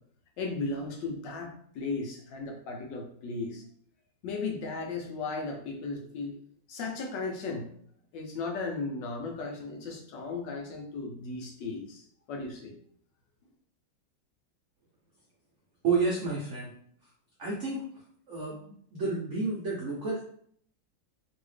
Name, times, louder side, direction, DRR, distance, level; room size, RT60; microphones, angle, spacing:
voice 1, 0.4-3.6 4.2-6.4 6.7-7.7 8.1-12.7, left 3 dB, 70° left, 1 dB, 1.2 m, -36 dB
voice 2, 15.8-16.7 17.4-17.8 18.3-18.5 18.9-20.2, right 4 dB, 70° right, -4 dB, 0.7 m, -30 dB
3.1 x 2.7 x 3.1 m, 0.63 s
omnidirectional pair, 2.2 m